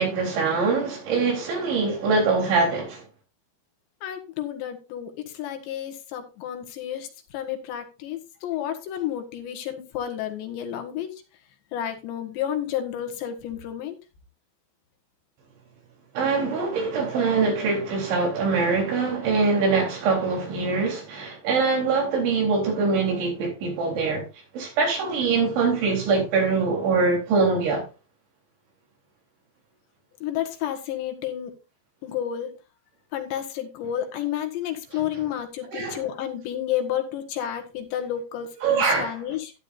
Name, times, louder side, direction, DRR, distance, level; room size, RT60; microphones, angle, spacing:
voice 1, 0.0-3.0 16.1-24.3 24.5-27.8 34.9-35.1 35.7-36.0 38.6-39.1, right 4 dB, 85° right, 6.2 m, -23 dB
voice 2, 4.0-11.1 11.7-14.0 30.2-31.5 32.0-32.6 33.1-39.5, left 10 dB, 75° left, 3.6 m, -31 dB
12.0 x 11.0 x 2.6 m
omnidirectional pair, 5.2 m